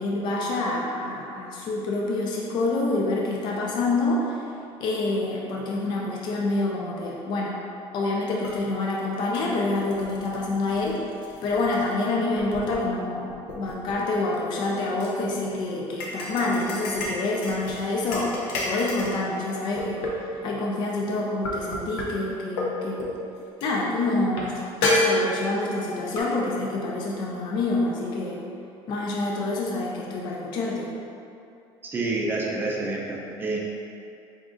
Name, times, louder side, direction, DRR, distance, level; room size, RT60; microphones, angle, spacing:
voice 1, 0.0-4.4 4.8-7.6 7.9-11.0 11.4-18.4 18.6-20.1 20.4-23.0 23.6-28.4 28.9-30.9, left 2 dB, 40° left, -2 dB, 0.5 m, -27 dB
sound 1, 8.4-8.6 9.0-12.0 12.4-12.9 13.3-15.1 16.0-19.2 19.8-20.4 21.4-22.1 22.6-22.7 23.0-23.2 23.6-23.7 24.3-24.5 24.8-25.6 26.2-26.3, left 1 dB, 80° left, 0.7 m, -29 dB
voice 2, 31.8-33.6, right 2 dB, 20° right, -3 dB, 0.5 m, -28 dB
5.0 x 2.4 x 3.6 m, 2.6 s
cardioid pair, 165°, 11 cm